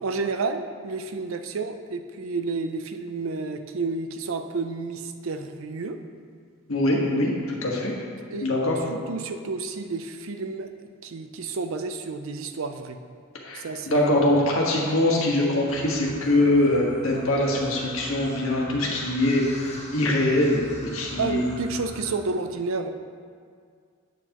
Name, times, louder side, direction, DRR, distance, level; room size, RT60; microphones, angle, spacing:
voice 1, 0.0-6.0 8.3-8.5 8.9-10.7 11.0-13.0 13.5-14.2 21.2-22.9, right 4 dB, 75° right, 7 dB, 0.5 m, -30 dB
voice 2, 6.7-7.9 8.4-8.8 13.4-21.4, left 1 dB, 75° left, -2 dB, 1.5 m, -23 dB
sound 1, 15.7-22.1, left 1 dB, 30° left, 1.1 m, -42 dB
8.3 x 8.0 x 3.0 m, 2.1 s
head